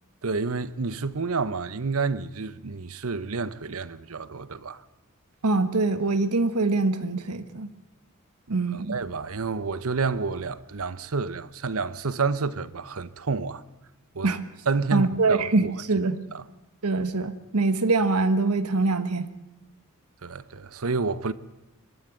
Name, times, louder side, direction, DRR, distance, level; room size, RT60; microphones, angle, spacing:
voice 1, 0.2-4.8 8.9-13.6 14.1-14.3 14.7-15.7 16.3-16.4 20.2-21.3, right 4 dB, 70° right, 0.9 m, -29 dB
voice 2, 5.4-7.7 8.5-8.9 14.2-14.4 14.9-16.2 16.8-19.3, right 3 dB, 90° right, 1.3 m, -24 dB
22.5 x 13.0 x 9.0 m
head